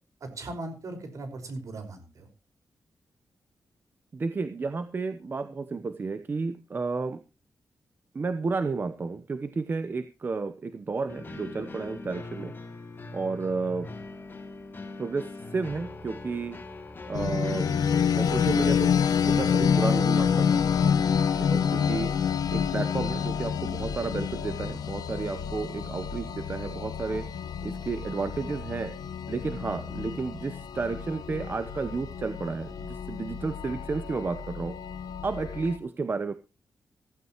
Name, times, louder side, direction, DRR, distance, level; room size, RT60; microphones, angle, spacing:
voice 1, 0.2-2.3, right 2 dB, 55° right, 7 dB, 5.2 m, -38 dB
voice 2, 4.1-7.2 8.1-12.5 13.1-13.9 15.0-16.6 17.1-17.7 18.1-18.9 19.3-21.0 21.4-22.1 22.5-27.3 27.6-28.9 29.3-34.8 35.2-36.3, right 4 dB, 30° right, 11 dB, 0.9 m, -32 dB
sound 1, 11.1-22.0, left 3 dB, 30° left, 2.6 m, -42 dB
sound 2, 17.1-35.8, left 7 dB, 90° left, 1.3 m, -28 dB
15.5 x 15.5 x 3.1 m, 0.31 s
wide cardioid pair, 165°, 6 cm